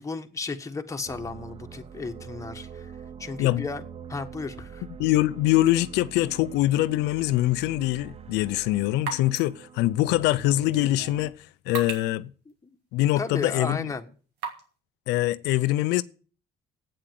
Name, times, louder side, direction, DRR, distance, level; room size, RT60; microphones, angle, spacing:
voice 1, 0.0-2.9 3.2-3.8 4.1-4.8 13.2-14.0, left 4 dB, 20° left, 1.5 m, -34 dB
sound 1, 1.1-11.3, right 7 dB, 35° right, 0.7 m, -44 dB
voice 2, 5.0-12.3 12.9-13.9 15.1-16.0, left 16 dB, 90° left, 0.5 m, -24 dB
sound 2, 8.0-14.8, right 6 dB, 85° right, 2.7 m, -42 dB
8.8 x 8.7 x 9.2 m
cardioid pair, 110°, 17 cm